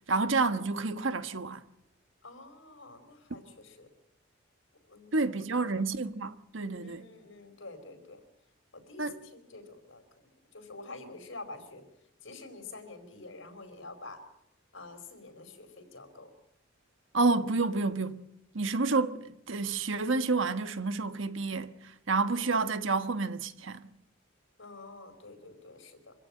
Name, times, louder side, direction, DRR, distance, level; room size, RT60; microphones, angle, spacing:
voice 1, 0.1-1.6 5.1-7.0 9.0-9.1 17.1-18.2 18.5-21.8 22.1-23.8, right 3 dB, 75° right, 1.4 m, -29 dB
voice 2, 2.2-3.9 4.9-5.7 6.8-8.2 8.7-11.8 12.2-14.2 14.7-16.3 24.6-26.1, left 3 dB, 75° left, 4.9 m, -48 dB
26.0 x 16.0 x 8.8 m
head